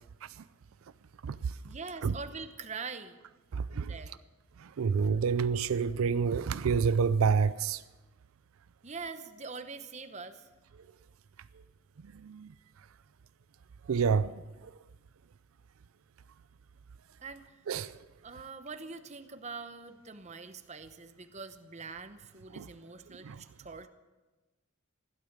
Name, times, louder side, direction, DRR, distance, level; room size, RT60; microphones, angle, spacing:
voice 1, 1.6-3.2 3.9-4.2 8.8-10.5 17.2-17.6 18.2-23.9, right 4 dB, 35° right, 0.9 m, -43 dB
voice 2, 3.5-3.9 4.6-7.8 12.1-12.5 13.9-14.4 17.7-18.0 22.5-22.7 23.2-23.4, right 5 dB, 90° right, 0.4 m, -28 dB
15.5 x 12.0 x 6.5 m
head